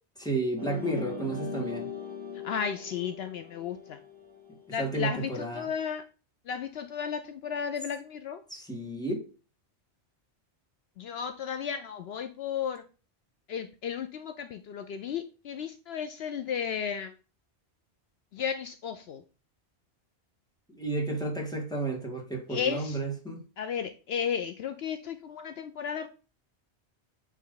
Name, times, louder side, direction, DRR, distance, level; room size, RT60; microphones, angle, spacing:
voice 1, 0.2-1.9 4.7-5.7 8.5-9.2 20.7-23.4, right 2 dB, 5° left, 1.9 m, -32 dB
sound 1, 0.6-5.2, left 5 dB, 65° right, 2.1 m, -40 dB
voice 2, 2.4-4.0 4.7-6.0 6.5-8.4 11.0-12.8 13.5-17.1 18.3-19.2 22.5-23.0 23.6-26.1, left 7 dB, 70° left, 0.8 m, -34 dB
9.1 x 3.3 x 3.9 m
omnidirectional pair, 1.1 m